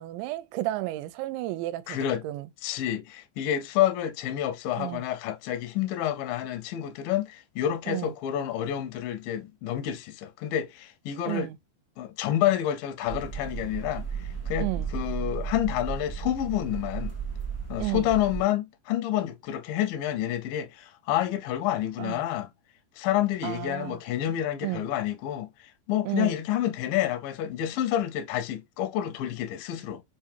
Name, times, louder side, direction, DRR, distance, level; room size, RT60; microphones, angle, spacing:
voice 1, 0.0-2.0 2.2-2.5 4.8-5.0 7.9-8.1 11.3-11.6 14.6-14.9 17.8-18.1 22.0-22.2 23.4-24.0 24.6-24.9 26.1-26.4, right 17 dB, 85° right, 2.8 m, -32 dB
voice 2, 1.9-2.2 2.6-11.5 12.0-14.1 14.5-17.2 17.7-22.5 23.0-30.0, left 11 dB, 85° left, 2.0 m, -29 dB
sound 1, 13.1-18.4, right 6 dB, 20° left, 0.6 m, -34 dB
7.2 x 2.5 x 2.7 m
omnidirectional pair, 5.1 m